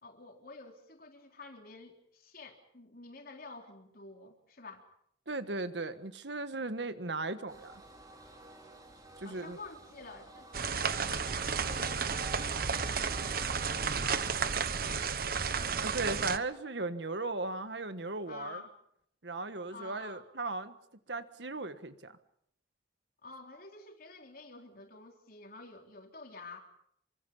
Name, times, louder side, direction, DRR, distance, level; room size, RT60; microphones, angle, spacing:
voice 1, 0.0-4.9 9.2-12.7 13.2-15.6 18.3-18.7 19.7-20.3 23.2-26.6, left 3 dB, 55° left, 3 dB, 3.7 m, -50 dB
voice 2, 5.3-7.8 9.2-9.6 15.8-18.6 19.2-20.7 21.1-22.2, right 3 dB, 75° right, 11 dB, 1.5 m, -37 dB
sound 1, 7.5-14.4, right 1 dB, 20° right, 3.6 m, -51 dB
sound 2, 10.5-16.4, right 6 dB, 55° right, 1.1 m, -32 dB
27.5 x 25.0 x 5.5 m, 0.71 s
head